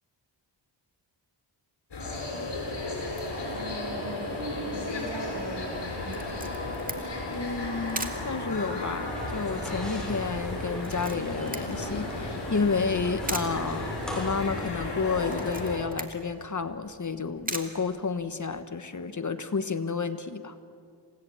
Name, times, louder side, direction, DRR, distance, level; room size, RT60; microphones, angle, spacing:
sound 1, 1.9-15.8, left 2 dB, 65° left, 7.6 m, -34 dB
voice 1, 3.5-6.4, right 1 dB, 65° right, 1 dB, 7.0 m, -39 dB
Camera, 6.1-18.6, right 2 dB, 20° right, 2.3 m, -42 dB
voice 2, 7.3-13.9 14.2-20.5, left 4 dB, 40° left, 11 dB, 1.2 m, -31 dB
sound 2, 9.1-14.7, equal, ahead, 6.8 m, -38 dB
27.5 x 18.0 x 8.8 m, 2.3 s
cardioid pair, 70°, 45 cm